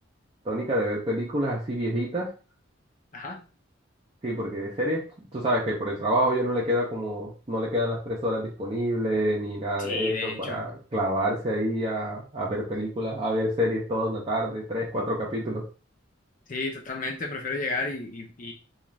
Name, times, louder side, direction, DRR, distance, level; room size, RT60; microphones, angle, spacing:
voice 1, 0.4-2.3 4.2-5.0 5.3-15.6, equal, 30° right, -4 dB, 0.6 m, -27 dB
voice 2, 3.1-3.4 9.8-10.7 16.5-18.5, left 3 dB, 45° left, 2 dB, 0.6 m, -32 dB
2.4 x 2.4 x 3.1 m, 0.35 s
head